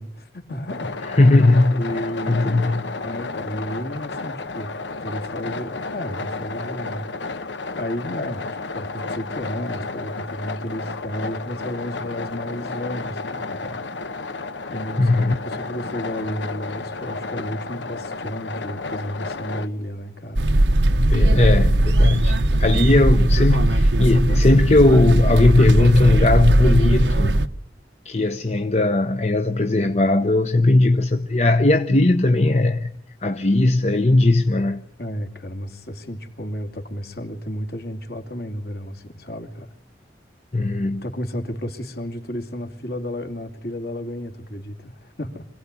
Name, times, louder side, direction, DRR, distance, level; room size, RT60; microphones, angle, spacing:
voice 1, 0.0-1.0 1.7-2.7 3.0-4.7 5.0-7.4 7.8-13.9 14.7-15.2 15.4-20.8 35.0-39.7 41.0-45.5, equal, 60° left, 2.6 m, -32 dB
sound 1, 0.7-19.7, left 3 dB, 85° left, 1.1 m, -32 dB
voice 2, 1.2-1.8 2.3-2.9 15.0-15.3 21.0-27.4 28.0-32.9 33.2-34.8 40.5-41.0, left 2 dB, 35° left, 0.9 m, -18 dB
sound 2, 20.4-27.5, right 1 dB, 80° right, 1.2 m, -18 dB
25.5 x 17.5 x 9.8 m
head